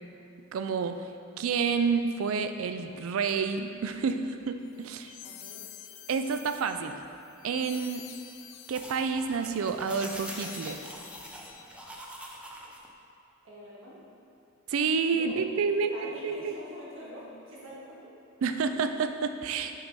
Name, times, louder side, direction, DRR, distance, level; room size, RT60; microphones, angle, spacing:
voice 1, 0.5-1.0 1.4-5.1 6.1-7.0 7.4-8.0 8.7-10.8 14.7-16.6 18.4-19.8, right 5 dB, 90° right, 8 dB, 0.4 m, -29 dB
sound 1, 4.7-12.0, left 9 dB, 70° left, 0.5 m, -47 dB
voice 2, 5.2-5.7 13.4-14.1 15.1-15.4 15.7-18.1, equal, 75° right, -6 dB, 1.4 m, -44 dB
sound 2, 8.7-12.9, right 1 dB, 5° right, 0.4 m, -44 dB
6.3 x 4.2 x 4.6 m, 2.8 s
head